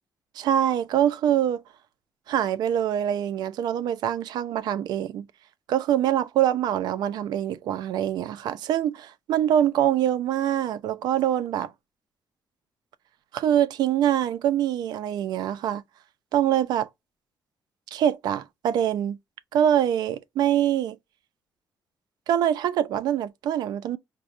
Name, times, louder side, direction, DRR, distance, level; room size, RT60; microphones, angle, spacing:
voice 1, 0.4-1.6 2.3-5.3 5.7-11.7 13.3-15.8 16.3-16.9 17.9-19.2 19.5-21.0 22.3-24.0, right 10 dB, 75° right, 0.5 m, -24 dB
5.9 x 2.2 x 2.4 m
cardioid pair, 165°, 7 cm